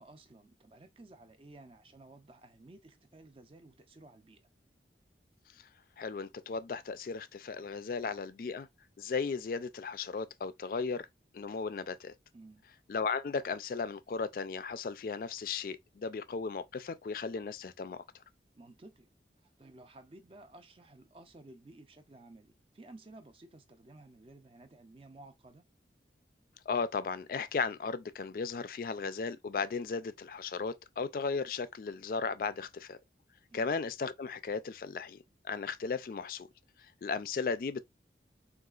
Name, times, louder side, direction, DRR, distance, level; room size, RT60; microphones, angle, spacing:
voice 1, 0.0-4.4 12.3-12.7 18.5-19.1 19.4-25.7 33.5-33.7, right 2 dB, 30° right, 0.5 m, -55 dB
voice 2, 6.0-8.7 9.0-11.0 11.3-12.1 12.9-18.0 26.7-33.0 33.5-35.2 35.4-36.5 37.0-37.8, left 5 dB, 50° left, 0.3 m, -36 dB
3.8 x 2.4 x 2.3 m
head